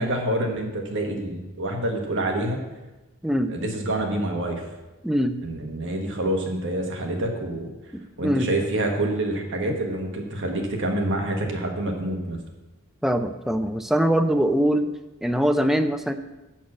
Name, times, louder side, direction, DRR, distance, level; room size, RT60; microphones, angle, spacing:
voice 1, 0.0-2.6 3.5-4.6 5.4-7.7 8.2-12.4, right 1 dB, 60° right, 3 dB, 1.3 m, -27 dB
voice 2, 5.0-5.4 7.9-8.5 13.0-14.9 15.2-16.1, equal, ahead, 7 dB, 0.4 m, -22 dB
7.2 x 6.3 x 7.2 m, 1.1 s
head